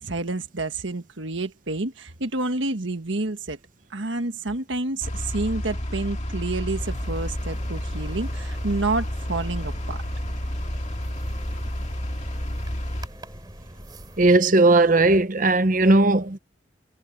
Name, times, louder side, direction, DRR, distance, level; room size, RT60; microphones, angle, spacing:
voice 1, 0.0-3.6 3.9-10.0, right 2 dB, 75° right, 1.5 m, -29 dB
sound 1, 5.0-13.1, equal, 35° left, 2.0 m, -30 dB
sound 2, 6.8-14.3, right 1 dB, 20° right, 3.6 m, -42 dB
Piano, 7.2-15.2, equal, 5° left, 7.5 m, -55 dB
voice 2, 14.2-16.4, right 2 dB, 40° right, 0.8 m, -17 dB
head